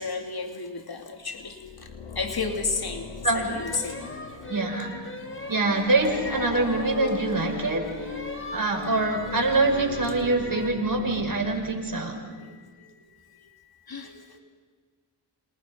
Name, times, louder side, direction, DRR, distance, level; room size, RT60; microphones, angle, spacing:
voice 1, 0.0-4.1 9.4-9.5 11.4-11.6 11.9-14.4, left 4 dB, 50° left, 5 dB, 2.8 m, -34 dB
sound 1, 1.3-12.5, left 4 dB, 85° left, 2.6 m, -39 dB
sound 2, 3.3-10.8, left 2 dB, 25° left, 4.6 m, -40 dB
voice 2, 4.5-4.9 5.5-8.1 8.5-12.2, right 2 dB, 45° right, 2 dB, 6.2 m, -25 dB
28.5 x 27.0 x 5.6 m, 1.5 s
cardioid pair, 45°, 46 cm